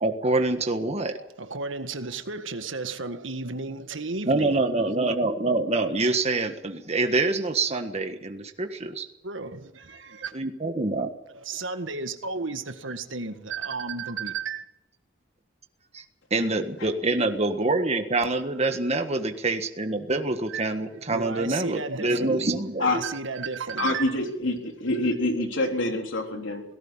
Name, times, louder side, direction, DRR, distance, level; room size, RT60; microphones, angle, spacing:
voice 1, 0.0-1.2 4.3-9.1 10.3-11.1 16.3-23.0 26.4-26.5, right 2 dB, 35° right, 1.6 m, -26 dB
voice 2, 1.1-4.8 9.2-10.3 11.3-14.7 20.5-22.6 22.9-24.2, right 4 dB, 85° right, 1.7 m, -33 dB
voice 3, 23.8-26.6, left 2 dB, 80° left, 3.8 m, -26 dB
18.5 x 16.5 x 8.9 m
head